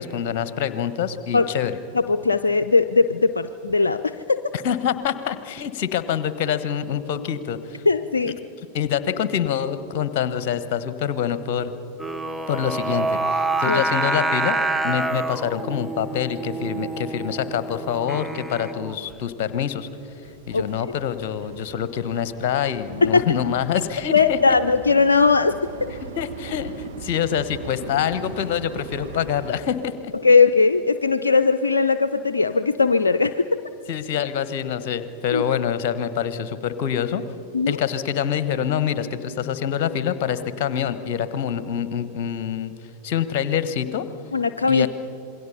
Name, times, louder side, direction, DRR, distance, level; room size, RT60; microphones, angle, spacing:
voice 1, 0.0-1.8 4.6-7.8 8.3-8.4 8.7-11.7 12.5-14.6 14.8-19.9 20.5-24.4 26.2-30.1 33.9-37.2 37.7-42.7 43.0-44.0 44.7-44.9, left 9 dB, 45° left, 13 dB, 1.1 m, -26 dB
voice 2, 1.9-4.4 7.9-8.4 13.7-13.8 20.5-20.7 23.0-23.3 24.1-25.9 30.2-33.6 35.3-35.4 37.5-37.8 44.3-44.9, left 4 dB, 75° left, 11 dB, 0.5 m, -19 dB
Singing, 12.0-19.1, right 2 dB, 5° right, 0.6 m, -27 dB
sound 1, 19.6-29.5, right 5 dB, 55° right, 1.6 m, -40 dB
27.0 x 22.0 x 5.6 m, 2.8 s
figure-of-eight pair, 90°, 0 cm